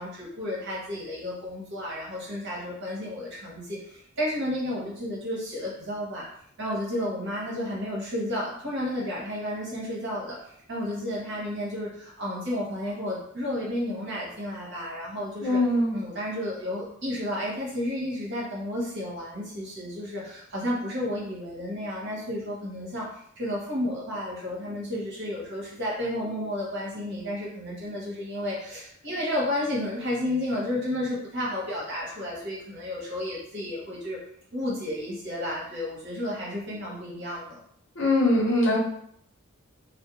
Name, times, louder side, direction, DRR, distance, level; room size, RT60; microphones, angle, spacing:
voice 1, 0.0-6.2 6.6-15.6 15.9-23.1 23.4-34.2 34.5-37.6, left 1 dB, 55° right, -5 dB, 1.0 m, -32 dB
voice 2, 15.4-15.9 38.0-38.8, left 1 dB, 60° left, -3 dB, 0.8 m, -22 dB
2.4 x 2.1 x 2.9 m, 0.67 s
head